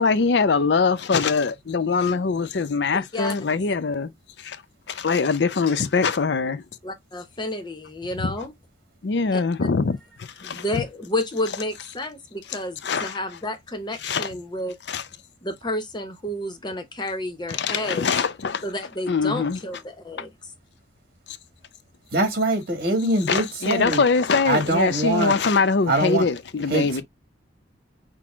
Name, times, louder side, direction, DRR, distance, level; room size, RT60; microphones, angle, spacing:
voice 1, 0.0-4.1 4.4-4.6 4.9-6.6 8.2-8.4 9.0-10.8 12.5-13.2 14.0-14.3 14.9-15.0 17.5-18.6 19.1-19.6 21.3-21.4 23.3-27.0, left 4 dB, 65° left, 0.5 m, -23 dB
voice 2, 2.9-3.3 6.8-8.5 9.3-9.4 10.4-14.8 15.4-18.1 18.6-20.3, left 1 dB, 25° left, 0.7 m, -30 dB
voice 3, 22.1-24.0 24.5-25.4 25.9-26.3 26.7-27.0, right 2 dB, 55° right, 2.0 m, -23 dB
6.0 x 2.1 x 3.5 m
head